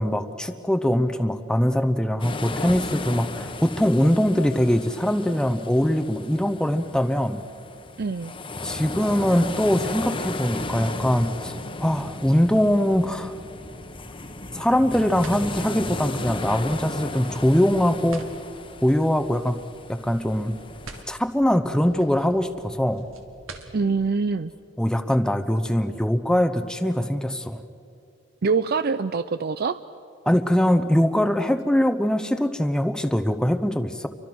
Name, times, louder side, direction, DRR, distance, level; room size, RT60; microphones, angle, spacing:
voice 1, 0.0-7.4 8.6-11.5 11.8-13.3 14.5-18.2 18.8-19.6 19.9-20.6 21.1-23.1 24.8-27.6 30.3-34.1, equal, 5° left, 8 dB, 0.8 m, -22 dB
sound 1, 2.2-21.0, left 2 dB, 25° left, 1.2 m, -35 dB
voice 2, 8.0-8.3 23.7-24.5 28.4-29.8, right 4 dB, 50° right, 12 dB, 0.5 m, -24 dB
sound 2, 11.8-24.1, right 2 dB, 85° right, 2.2 m, -48 dB
29.0 x 24.0 x 6.2 m, 2.6 s
head